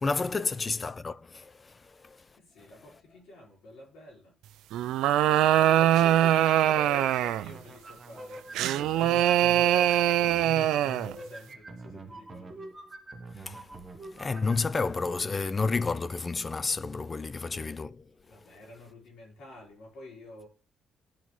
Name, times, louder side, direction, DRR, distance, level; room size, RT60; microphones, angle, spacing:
voice 1, 0.0-1.7 2.0-2.2 13.4-13.6 14.2-18.0, left 4 dB, 30° left, 0.4 m, -30 dB
voice 2, 2.4-4.4 5.6-8.4 8.7-12.7 18.3-20.5, left 1 dB, 85° left, 3.4 m, -49 dB
sound 1, 4.7-7.5 8.5-11.1, right 12 dB, 90° right, 0.3 m, -23 dB
sound 2, 6.7-14.6, right 2 dB, 30° right, 1.0 m, -44 dB
12.5 x 4.2 x 3.1 m
cardioid pair, 90°, 0 cm